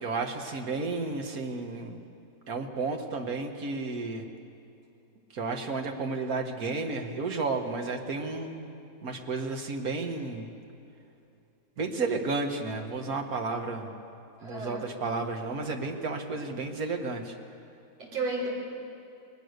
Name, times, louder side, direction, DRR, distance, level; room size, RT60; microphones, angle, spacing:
voice 1, 0.0-2.0 2.5-4.3 5.3-8.7 9.0-10.5 11.8-14.0 14.4-17.3, right 3 dB, 35° right, 3 dB, 1.7 m, -32 dB
voice 2, 14.4-14.9 18.0-18.5, right 2 dB, 55° right, -3 dB, 5.8 m, -33 dB
28.0 x 21.0 x 6.8 m, 2.7 s
omnidirectional pair, 3.4 m